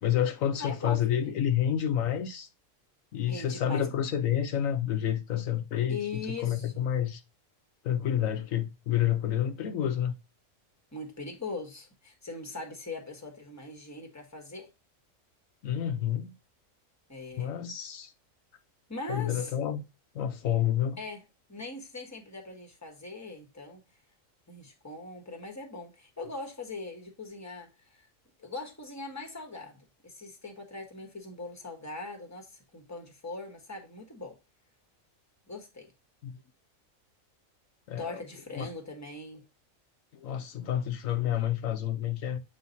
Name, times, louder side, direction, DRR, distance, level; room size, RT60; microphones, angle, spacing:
voice 1, 0.0-2.5 3.1-7.2 7.8-10.2 15.6-16.3 17.4-18.1 19.1-19.8 20.1-21.0 36.2-36.3 37.9-38.2 38.6-38.7 40.1-42.4, left 10 dB, 75° left, 1.2 m, -29 dB
voice 2, 0.6-1.3 3.3-3.9 5.9-6.9 10.9-14.7 17.1-17.5 18.9-19.5 21.0-21.2 21.5-23.8 24.5-28.1 28.4-34.4 35.5-35.9 38.0-39.4, left 3 dB, 15° left, 1.3 m, -41 dB
7.7 x 3.2 x 4.0 m
omnidirectional pair, 1.4 m